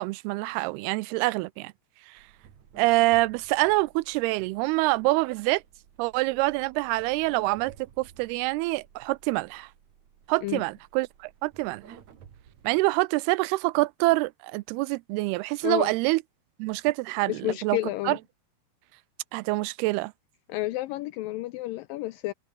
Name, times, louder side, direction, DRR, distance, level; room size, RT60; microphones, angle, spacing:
voice 1, 0.0-1.7 2.8-5.6 6.0-9.7 10.3-11.8 12.6-16.2 16.6-17.8 18.1-18.2 19.3-20.1, right 22 dB, 85° right, 2.5 m, -26 dB
sound 1, 2.2-12.8, right 8 dB, 50° right, 3.2 m, -54 dB
voice 2, 17.3-18.2 20.5-22.3, left 17 dB, 80° left, 2.0 m, -30 dB
omnidirectional pair, 4.6 m